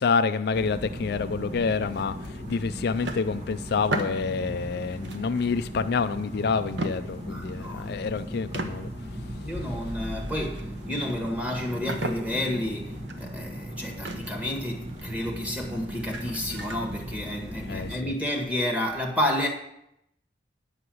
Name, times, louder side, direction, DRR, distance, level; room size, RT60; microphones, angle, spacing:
voice 1, 0.0-8.9 17.7-18.1, left 5 dB, 65° left, 0.4 m, -28 dB
sound 1, 0.5-18.0, equal, 40° right, 1.9 m, -38 dB
sound 2, 1.9-6.3 6.7-8.2 8.5-17.6, right 2 dB, 90° right, 1.1 m, -38 dB
voice 2, 7.2-8.1 9.4-19.5, left 1 dB, 10° right, 1.8 m, -30 dB
9.8 x 5.7 x 7.7 m
head